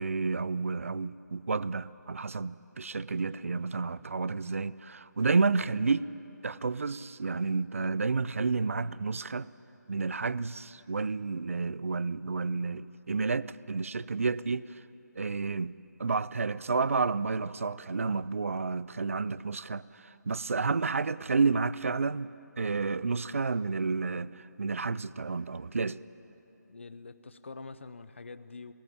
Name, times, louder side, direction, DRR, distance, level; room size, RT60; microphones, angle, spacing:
voice 1, 0.0-6.1 6.4-9.5 9.9-14.7 15.2-15.7 16.0-22.3 22.6-26.0, right 4 dB, 45° right, 0.4 m, -30 dB
voice 2, 26.7-28.7, left 4 dB, 40° left, 0.7 m, -45 dB
20.5 x 16.5 x 8.7 m
figure-of-eight pair, 175°, 10 cm